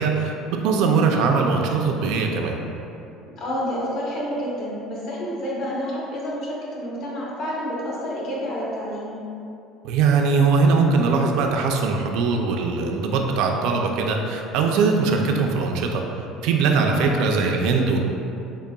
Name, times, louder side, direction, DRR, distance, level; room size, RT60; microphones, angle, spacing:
voice 1, 0.0-2.6 9.8-16.0 16.4-18.0, right 4 dB, 65° right, 2 dB, 0.3 m, -21 dB
voice 2, 3.4-9.2 16.9-17.1, equal, 45° left, -6 dB, 0.8 m, -29 dB
3.7 x 3.4 x 2.2 m, 2.7 s
cardioid pair, 165°, 0 cm